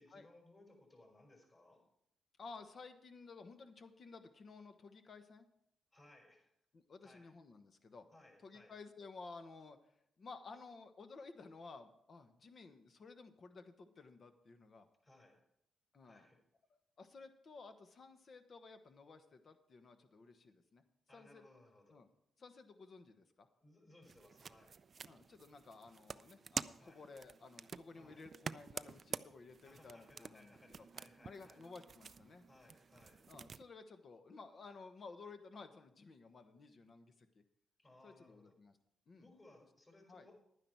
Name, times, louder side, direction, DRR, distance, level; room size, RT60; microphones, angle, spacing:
voice 1, 0.0-1.8 5.9-6.5 7.0-7.3 8.1-8.7 15.0-15.4 16.0-16.4 21.1-22.0 23.6-24.8 26.8-27.0 27.9-28.2 29.6-31.6 32.5-33.3 37.8-38.6 39.2-40.4, left 2 dB, 30° left, 0 dB, 4.9 m, -63 dB
voice 2, 2.4-5.4 6.7-8.1 8.4-9.8 10.2-14.9 15.9-16.2 16.7-20.8 21.1-21.4 21.9-22.1 22.4-23.5 25.1-30.9 31.2-32.5 33.3-37.4 38.0-38.8 39.1-39.3 40.1-40.3, left 4 dB, 50° left, 8 dB, 1.2 m, -55 dB
sound 1, 24.0-33.6, right 5 dB, 45° right, 0.4 m, -49 dB
11.0 x 9.8 x 4.6 m, 0.76 s
cardioid pair, 75°, 0 cm